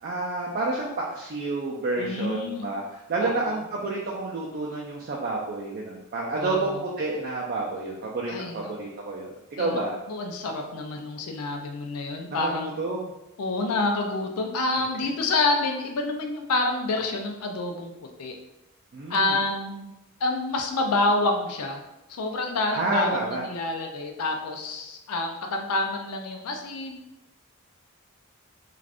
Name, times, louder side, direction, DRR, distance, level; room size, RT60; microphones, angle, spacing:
voice 1, 0.0-10.0 12.4-13.1 18.9-19.3 22.7-23.4, right 2 dB, 45° right, -3 dB, 0.4 m, -29 dB
voice 2, 2.0-2.7 3.2-3.6 6.4-6.8 8.3-8.7 9.6-9.8 10.1-12.7 13.4-17.9 18.2-18.4 19.1-19.9 20.2-21.8 22.1-27.0, left 2 dB, 80° left, 3 dB, 0.5 m, -28 dB
2.4 x 2.4 x 3.4 m, 0.93 s
head